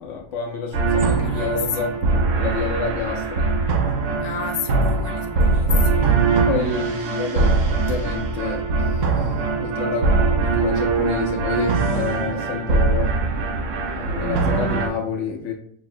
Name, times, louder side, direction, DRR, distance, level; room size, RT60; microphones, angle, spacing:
voice 1, 0.0-2.0 2.4-3.5 6.4-10.1 10.4-13.1 13.8-15.5, left 5 dB, 85° left, 0 dB, 0.6 m, -29 dB
sound 1, 0.7-14.9, right 3 dB, 90° right, 0.6 m, -21 dB
voice 2, 1.0-1.6 4.2-6.2, left 7 dB, 65° left, 3 dB, 0.9 m, -32 dB
6.2 x 2.1 x 2.4 m, 0.67 s
omnidirectional pair, 1.9 m